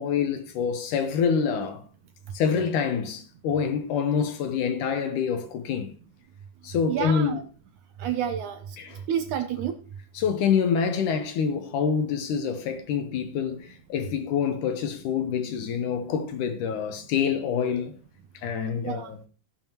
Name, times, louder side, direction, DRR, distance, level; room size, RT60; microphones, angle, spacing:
voice 1, 0.0-1.9 2.3-5.9 6.6-7.4 8.8-9.0 10.1-17.9 18.3-19.2, left 7 dB, 70° left, 2.2 m, -26 dB
voice 2, 6.9-7.4 8.0-8.6 9.1-9.8 18.8-19.1, right 9 dB, 75° right, 1.9 m, -29 dB
17.0 x 7.4 x 2.9 m
omnidirectional pair, 4.1 m